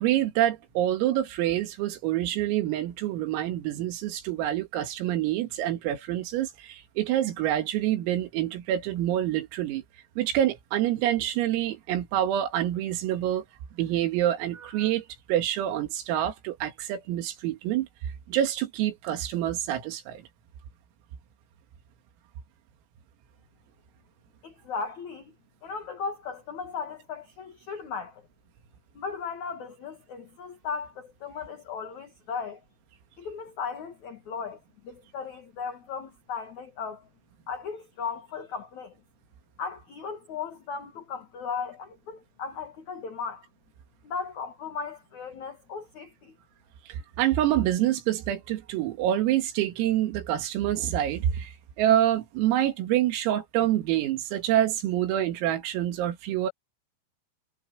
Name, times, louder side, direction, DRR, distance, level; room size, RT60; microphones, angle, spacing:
voice 1, 0.0-9.8 10.2-13.5 13.8-15.0 15.3-17.9 18.3-20.2 46.9-51.5 51.8-56.5, right 12 dB, 80° right, 4.7 m, -26 dB
voice 2, 24.4-25.3 25.6-28.3 28.9-32.6 33.2-37.1 37.5-39.0 39.6-43.5 44.0-46.4, left 5 dB, 60° left, 2.0 m, -36 dB
omnidirectional pair, 6.0 m